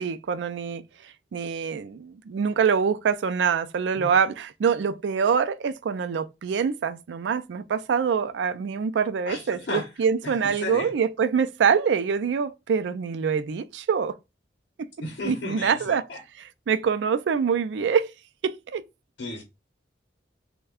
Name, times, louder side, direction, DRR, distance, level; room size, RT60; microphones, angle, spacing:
voice 1, 0.0-14.1 14.8-14.9 15.2-16.1 16.7-18.1 18.4-18.8, right 6 dB, 80° right, 0.3 m, -25 dB
voice 2, 9.3-9.9 10.2-10.9 15.0-16.2 19.2-19.4, left 2 dB, 80° left, 0.7 m, -34 dB
3.3 x 2.2 x 3.5 m
head